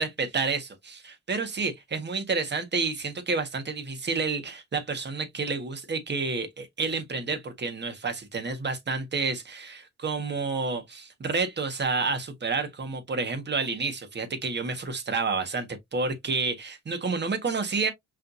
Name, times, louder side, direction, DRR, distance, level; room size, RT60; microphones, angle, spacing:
voice 1, 0.0-15.7 15.9-17.9, right 4 dB, 35° right, 1.7 m, -29 dB
5.6 x 3.3 x 2.7 m
cardioid pair, 90°, 30 cm